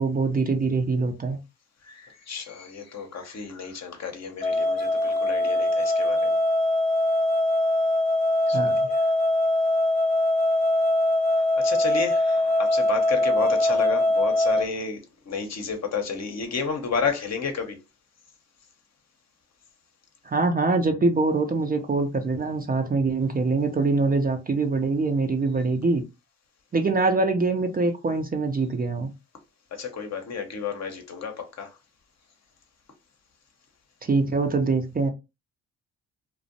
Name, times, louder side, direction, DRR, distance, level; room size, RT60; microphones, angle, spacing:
voice 1, 0.0-1.4 8.5-8.8 20.2-26.0 26.7-29.1 34.0-35.1, right 3 dB, 25° right, 0.5 m, -24 dB
voice 2, 1.8-6.4 8.5-9.0 11.3-17.8 29.7-31.7, left 6 dB, 45° left, 0.8 m, -32 dB
sound 1, 4.4-14.7, left 1 dB, 20° left, 0.9 m, -22 dB
2.4 x 2.0 x 2.6 m
hypercardioid pair, 45°, 36 cm